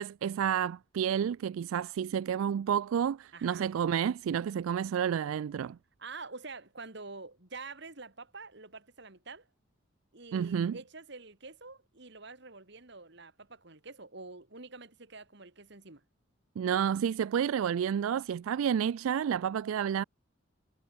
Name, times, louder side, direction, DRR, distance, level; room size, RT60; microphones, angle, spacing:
voice 1, 0.0-5.8 10.3-10.8 16.6-20.0, right 8 dB, 80° right, 0.3 m, -30 dB
voice 2, 3.3-3.7 6.0-9.5 10.1-16.0, right 3 dB, 55° right, 2.3 m, -47 dB
head